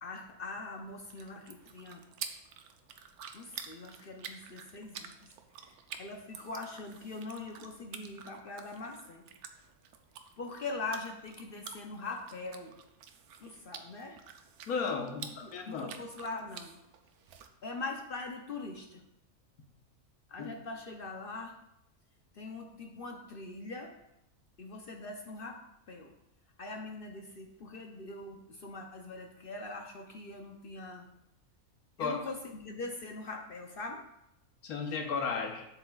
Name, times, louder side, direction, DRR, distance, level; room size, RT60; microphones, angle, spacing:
voice 1, 0.0-2.0 3.3-5.3 5.6-9.2 10.4-12.7 13.4-14.2 15.2-16.7 17.6-19.0 20.3-21.5 22.3-23.9 24.6-25.6 25.9-26.1 26.6-31.1 32.0-34.0, left 3 dB, 55° left, 3 dB, 0.6 m, -42 dB
sound 1, 0.9-17.5, right 7 dB, 85° right, 1.1 m, -49 dB
voice 2, 14.7-15.9 20.4-20.5 32.0-32.2 34.6-35.7, left 5 dB, 80° left, 3 dB, 1.4 m, -34 dB
7.9 x 7.5 x 2.3 m, 0.84 s
omnidirectional pair, 1.6 m